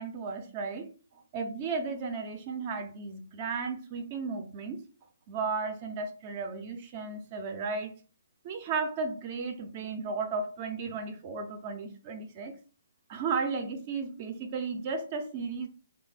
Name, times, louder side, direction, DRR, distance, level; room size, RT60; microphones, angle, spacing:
voice 1, 0.0-4.8 5.3-7.9 8.4-12.6 13.1-15.7, right 4 dB, 35° right, 0.6 m, -34 dB
3.2 x 2.0 x 3.9 m
figure-of-eight pair, 135°, 0 cm